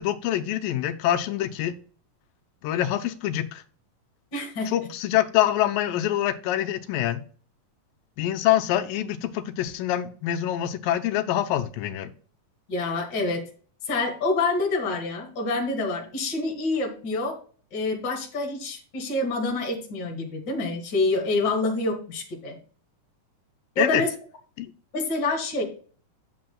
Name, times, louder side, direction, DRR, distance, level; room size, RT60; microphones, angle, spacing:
voice 1, 0.0-1.7 2.6-3.6 4.7-7.2 8.2-12.1 23.8-24.0 24.6-24.7, left 12 dB, 90° left, 9 dB, 2.4 m, -25 dB
voice 2, 4.3-4.7 12.7-13.4 13.9-17.4 17.7-22.6 23.8-24.1 24.9-25.6, left 2 dB, 40° left, 2 dB, 2.1 m, -27 dB
8.5 x 7.7 x 2.2 m, 0.41 s
omnidirectional pair, 3.9 m